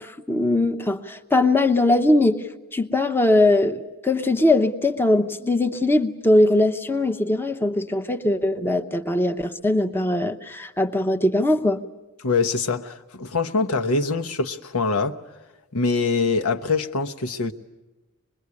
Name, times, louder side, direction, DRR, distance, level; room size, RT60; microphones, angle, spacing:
voice 1, 0.0-2.4 2.7-11.8, left 2 dB, 10° left, 6 dB, 0.8 m, -21 dB
voice 2, 12.2-15.2 15.7-17.5, left 4 dB, 85° left, 7 dB, 1.1 m, -24 dB
25.0 x 21.5 x 9.7 m, 1.1 s
head